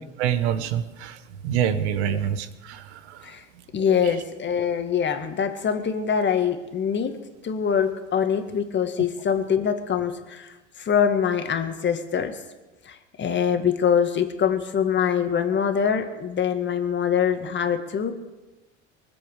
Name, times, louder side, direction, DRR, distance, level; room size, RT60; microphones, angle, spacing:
voice 1, 0.2-1.2 1.4-3.2, right 9 dB, 65° right, 12 dB, 1.4 m, -26 dB
voice 2, 3.7-7.2 7.4-12.4 12.9-18.1, left 7 dB, 30° left, 7 dB, 1.9 m, -24 dB
23.5 x 7.9 x 6.6 m, 1.1 s
figure-of-eight pair, 75°, 36 cm